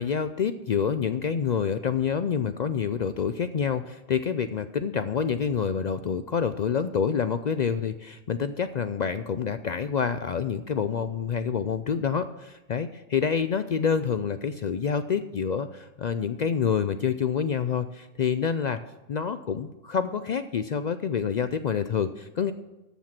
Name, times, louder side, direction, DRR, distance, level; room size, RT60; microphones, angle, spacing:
voice 1, 0.0-18.8 19.1-22.5, left 7 dB, 60° left, 11 dB, 0.4 m, -27 dB
13.5 x 7.1 x 5.9 m, 1.0 s
omnidirectional pair, 1.2 m